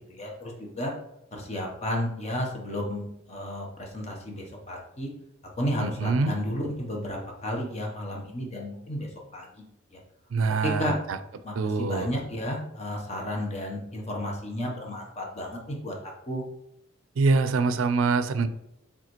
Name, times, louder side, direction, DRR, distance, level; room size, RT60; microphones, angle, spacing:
voice 1, 0.1-0.9 1.3-5.1 5.6-9.5 9.9-10.0 10.6-10.9 11.4-16.4, equal, 35° left, 0 dB, 0.9 m, -32 dB
voice 2, 5.8-6.4 10.3-11.2 11.6-12.1 17.2-18.5, right 4 dB, 85° right, 11 dB, 0.4 m, -24 dB
4.8 x 3.6 x 3.0 m, 0.78 s
head